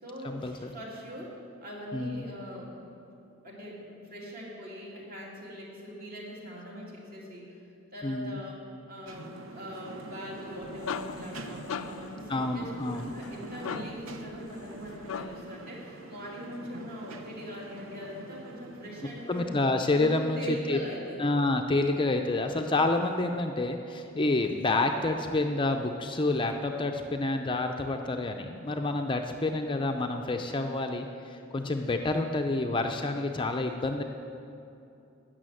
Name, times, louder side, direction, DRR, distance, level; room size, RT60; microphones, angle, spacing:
voice 1, 0.0-2.9 3.4-7.6 7.9-19.6 19.9-21.3, equal, 45° right, -4 dB, 2.7 m, -42 dB
voice 2, 1.9-2.2 8.0-8.4 12.3-13.1 19.3-20.8 21.2-34.0, left 2 dB, 25° left, 4 dB, 0.5 m, -28 dB
sound 1, 9.1-19.5, right 2 dB, 75° right, 0.9 m, -45 dB
sound 2, 10.4-15.6, left 6 dB, 90° left, 0.5 m, -40 dB
13.0 x 6.2 x 9.0 m, 2.7 s
head